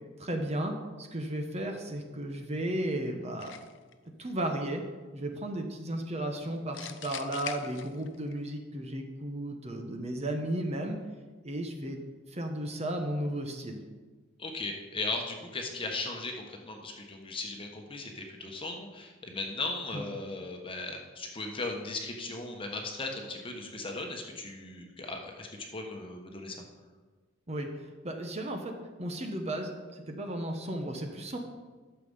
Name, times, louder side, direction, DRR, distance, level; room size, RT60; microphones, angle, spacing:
voice 1, 0.2-3.5 4.2-4.8 5.1-11.0 11.4-12.0 12.3-13.8 19.9-20.1 27.5-27.7 28.0-31.4, right 1 dB, 30° right, 4 dB, 1.0 m, -34 dB
sound 1, 3.4-3.9 6.7-8.3, left 9 dB, 60° left, 0.6 m, -42 dB
voice 2, 14.4-26.6, left 3 dB, 25° left, 2 dB, 1.2 m, -37 dB
12.0 x 6.8 x 5.5 m, 1.4 s
head